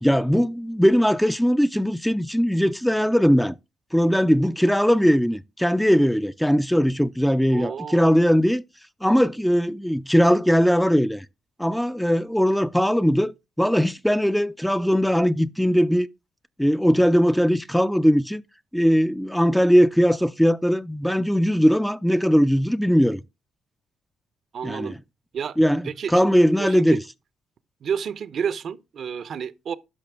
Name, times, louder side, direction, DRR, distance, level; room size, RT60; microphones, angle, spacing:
voice 1, 0.0-3.6 3.9-8.6 9.0-11.3 11.6-16.1 16.6-18.4 18.7-23.2 24.6-25.0 25.6-27.0, equal, ahead, 0.4 m, -20 dB
voice 2, 7.5-8.1 24.5-25.0 25.3-25.6 25.8-26.1 26.6-27.0 27.8-29.7, right 7 dB, 60° right, 0.7 m, -30 dB
10.5 x 5.9 x 3.4 m
cardioid pair, 90°, 0 cm